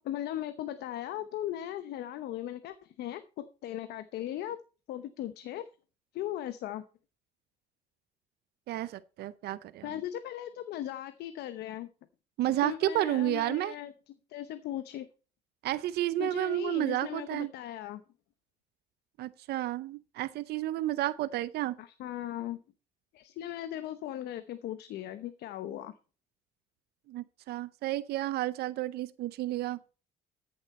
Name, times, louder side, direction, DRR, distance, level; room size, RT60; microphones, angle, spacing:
voice 1, 0.0-4.6 4.9-5.7 6.1-6.8 9.8-11.9 12.6-13.9 14.3-15.1 16.2-18.0 21.8-22.6 23.1-25.9, left 12 dB, 75° left, 0.9 m, -38 dB
voice 2, 8.7-10.0 12.4-13.7 15.6-17.5 19.2-21.8 27.1-29.8, right 15 dB, 70° right, 0.6 m, -31 dB
13.5 x 7.1 x 4.2 m
cardioid pair, 110°, 17 cm